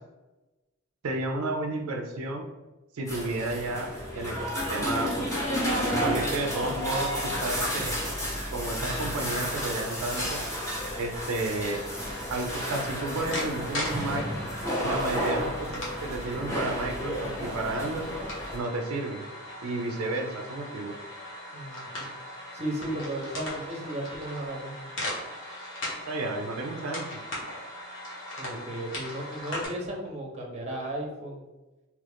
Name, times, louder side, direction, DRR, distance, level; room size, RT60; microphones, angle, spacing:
voice 1, 1.0-2.5 2.9-5.4 6.0-8.0 8.5-10.4 11.0-11.8 12.3-14.2 14.8-18.1 18.5-19.2 19.6-20.9 26.1-27.2, right 2 dB, 85° right, 3 dB, 0.4 m, -32 dB
sound 1, 3.1-18.6, equal, 15° left, 0.8 m, -31 dB
sound 2, 11.1-29.7, left 1 dB, 65° left, 1.1 m, -39 dB
voice 2, 21.5-22.1 22.5-24.9 28.4-31.5, right 1 dB, 30° right, 0 dB, 0.7 m, -35 dB
2.9 x 2.4 x 3.4 m, 1.1 s
head